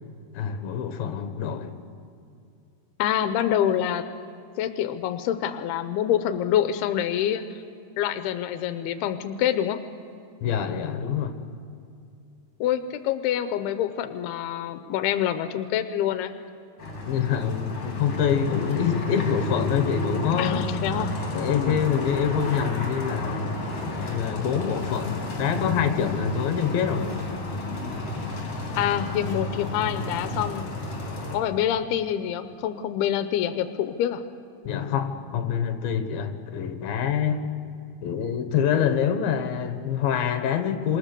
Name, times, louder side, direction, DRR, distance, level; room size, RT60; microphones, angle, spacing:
voice 1, 0.3-1.8 10.4-11.4 17.1-20.7 21.3-23.6 24.1-27.1 34.6-37.4 38.0-41.0, left 8 dB, 70° left, 8 dB, 2.9 m, -26 dB
voice 2, 3.0-4.0 4.6-7.4 8.0-9.8 12.6-16.3 20.4-21.2 21.5-21.8 28.8-30.7 31.3-34.2, left 10 dB, 90° left, 10 dB, 2.8 m, -26 dB
sound 1, 16.8-31.4, left 2 dB, 40° left, 4.5 m, -32 dB
27.0 x 24.0 x 6.8 m, 2.5 s
omnidirectional pair, 4.5 m